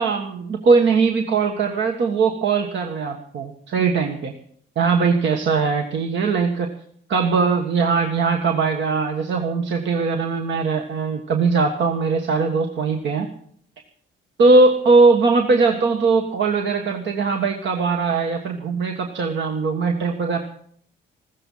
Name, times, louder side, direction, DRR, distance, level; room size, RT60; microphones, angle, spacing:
voice 1, 0.0-4.3 4.7-6.7 7.1-13.3 14.4-20.4, right 4 dB, 65° right, 4 dB, 1.6 m, -20 dB
15.5 x 14.0 x 5.7 m, 0.63 s
cardioid pair, 90°, 20 cm